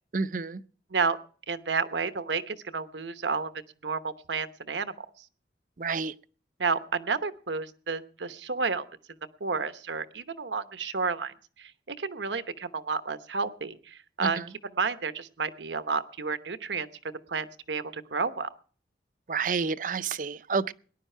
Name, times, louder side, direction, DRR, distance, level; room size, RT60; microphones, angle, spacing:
voice 1, 0.1-0.6 5.8-6.1 14.2-14.3 19.3-20.7, right 5 dB, 45° right, 0.5 m, -29 dB
voice 2, 1.5-3.5 3.8-5.1 6.6-8.8 9.4-16.9 17.3-18.5, right 4 dB, 80° right, 1.0 m, -31 dB
19.5 x 11.0 x 4.4 m
head